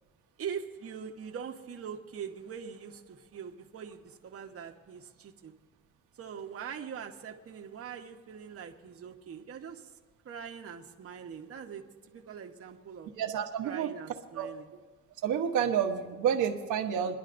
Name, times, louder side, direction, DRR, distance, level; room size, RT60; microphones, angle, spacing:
voice 1, 0.4-5.5 6.1-10.0 10.2-13.1 13.6-14.7, right 7 dB, 50° right, 3 dB, 1.0 m, -42 dB
voice 2, 13.2-13.9 14.4-14.5 15.2-17.2, right 8 dB, 85° right, 2 dB, 1.0 m, -29 dB
27.5 x 10.5 x 2.6 m, 1.3 s
cardioid pair, 90°, 30 cm